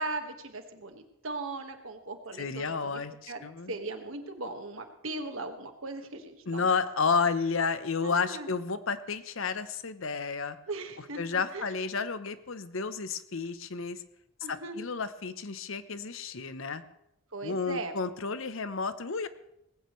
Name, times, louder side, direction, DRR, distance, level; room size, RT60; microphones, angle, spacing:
voice 1, 0.0-3.0 3.3-3.4 3.7-6.7 8.0-8.5 10.7-11.7 14.4-14.8 17.3-18.0, right 2 dB, 70° right, 6 dB, 1.7 m, -38 dB
voice 2, 2.4-3.7 6.5-10.6 11.2-14.0 14.5-16.8 17.4-19.3, left 5 dB, 70° left, 12 dB, 0.9 m, -31 dB
19.0 x 16.0 x 3.2 m, 0.81 s
head